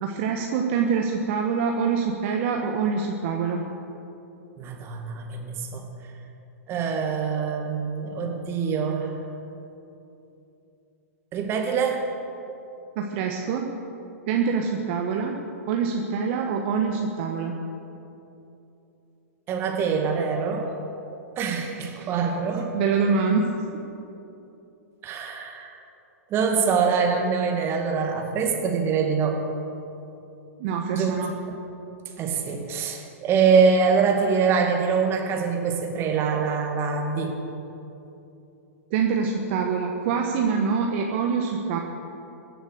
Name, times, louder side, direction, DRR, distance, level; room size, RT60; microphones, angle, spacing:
voice 1, 0.0-3.7 13.0-13.7 14.3-15.4 15.7-17.6 21.9-22.2 22.7-23.5 30.6-31.4 38.9-41.8, right 5 dB, 50° right, 2 dB, 1.3 m, -25 dB
voice 2, 4.6-5.8 6.7-9.1 11.3-12.1 19.5-20.7 21.4-22.7 25.0-25.8 26.3-29.4 30.9-31.1 31.5-31.6 32.2-37.4, right 5 dB, 30° right, 3 dB, 2.3 m, -24 dB
22.0 x 8.0 x 6.7 m, 2.9 s
hypercardioid pair, 110°, 8 cm